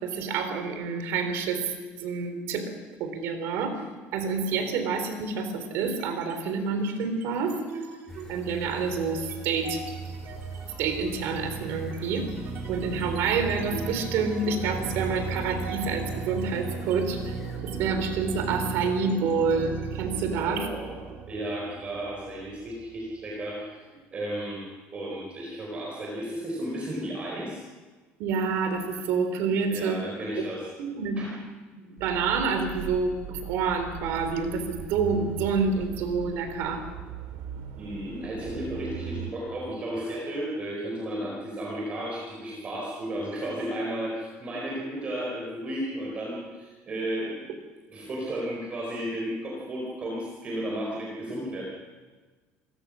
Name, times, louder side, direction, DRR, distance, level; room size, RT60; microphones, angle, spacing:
voice 1, 0.0-2.7 3.0-3.8 4.1-7.6 8.3-9.8 10.8-12.3 12.7-17.3 17.6-20.7 28.2-30.0 30.8-31.2 31.9-36.8, right 5 dB, 65° right, 8 dB, 3.9 m, -28 dB
sound 1, 5.9-6.4 6.8-23.4, right 5 dB, 50° right, 3.5 m, -37 dB
Golden Oriole+, 8.1-17.6, right 1 dB, 10° left, 4.0 m, -41 dB
voice 2, 20.3-24.7 24.9-27.6 29.7-30.7 31.2-31.4 37.8-47.5 47.9-51.6, right 1 dB, 25° right, -2 dB, 4.5 m, -34 dB
sound 2, 32.0-39.3, right 9 dB, 85° right, 2.7 m, -39 dB
27.5 x 17.5 x 6.4 m, 1.4 s
cardioid pair, 160°, 5 cm